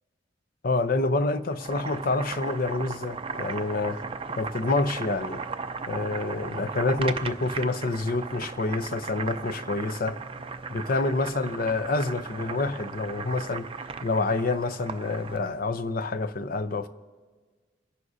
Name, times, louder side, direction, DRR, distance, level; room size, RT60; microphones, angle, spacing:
voice 1, 0.6-4.0 4.4-5.4 5.9-10.2 10.7-13.7 14.0-16.9, left 3 dB, 55° left, 12 dB, 0.6 m, -27 dB
Boiling, 1.4-15.5, right 5 dB, 30° right, 0.5 m, -37 dB
28.5 x 11.0 x 2.7 m, 1.5 s
head